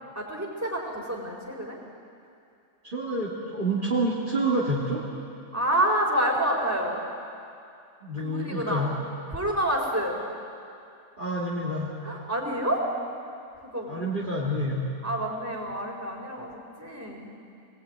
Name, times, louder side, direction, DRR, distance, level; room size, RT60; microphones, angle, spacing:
voice 1, 0.1-1.8 5.5-7.0 8.2-8.9 9.3-10.2 12.0-12.9 13.6-14.0 15.0-17.3, right 1 dB, 10° right, -1 dB, 4.3 m, -28 dB
voice 2, 2.8-5.1 8.0-8.9 11.2-11.9 13.9-14.9, right 1 dB, 35° right, -5 dB, 2.7 m, -28 dB
24.5 x 19.5 x 9.4 m, 2.5 s
omnidirectional pair, 1.4 m